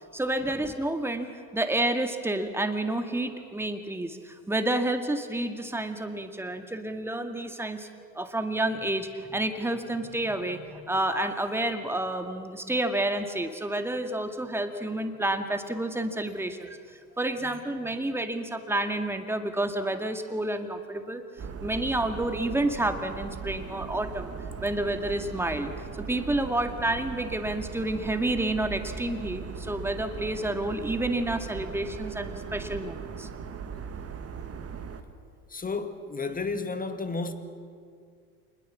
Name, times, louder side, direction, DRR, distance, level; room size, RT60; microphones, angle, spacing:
voice 1, 0.1-7.9 8.2-16.8 17.2-21.2 21.6-24.3 24.6-25.7 26.0-33.3, right 1 dB, 5° right, 2.0 m, -29 dB
sound 1, 21.4-35.0, right 6 dB, 30° right, 2.0 m, -39 dB
voice 2, 35.5-37.3, left 4 dB, 20° left, 2.0 m, -32 dB
27.0 x 21.0 x 7.5 m
hypercardioid pair, 80°, 47 cm